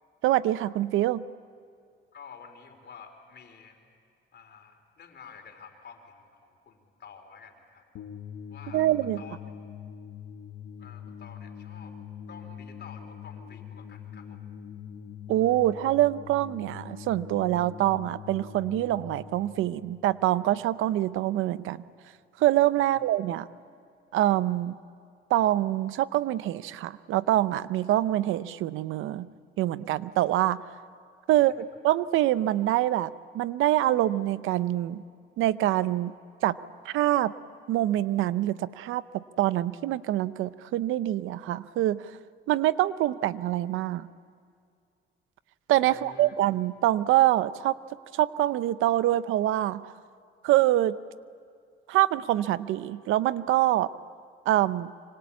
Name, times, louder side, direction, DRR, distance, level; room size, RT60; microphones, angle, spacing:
voice 1, 0.2-1.2 8.7-9.2 15.3-21.8 22.4-23.5 24.1-24.8 25.3-29.3 29.6-30.6 31.3-35.0 35.4-36.1 36.4-36.6 36.8-37.3 37.7-42.1 42.5-44.1 45.7-47.8 48.1-49.9 50.4-51.0 51.9-53.9 54.5-54.9, right 14 dB, 90° right, 16 dB, 0.7 m, -25 dB
voice 2, 2.1-3.8 4.3-7.8 8.5-9.4 10.8-11.9 12.3-14.5 22.8-23.0 31.3-31.6 45.8-46.4, left 6 dB, 60° left, 5 dB, 3.9 m, -50 dB
sound 1, 7.9-21.1, left 8 dB, 90° left, 1.5 m, -43 dB
25.5 x 25.0 x 8.5 m, 2.2 s
cardioid pair, 90°, 20 cm